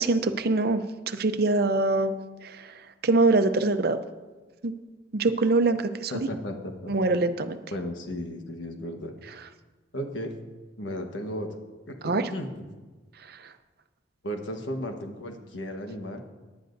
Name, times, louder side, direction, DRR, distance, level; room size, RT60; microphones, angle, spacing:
voice 1, 0.0-4.0 4.6-4.7 5.1-6.3 6.9-7.6 12.0-12.3 13.3-13.5, right 3 dB, 55° right, 9 dB, 0.6 m, -24 dB
voice 2, 6.1-7.0 7.7-9.2 9.9-10.3 10.8-11.5 11.9-12.7 14.2-16.2, equal, 80° left, 4 dB, 1.3 m, -35 dB
18.0 x 10.5 x 2.6 m, 1.3 s
head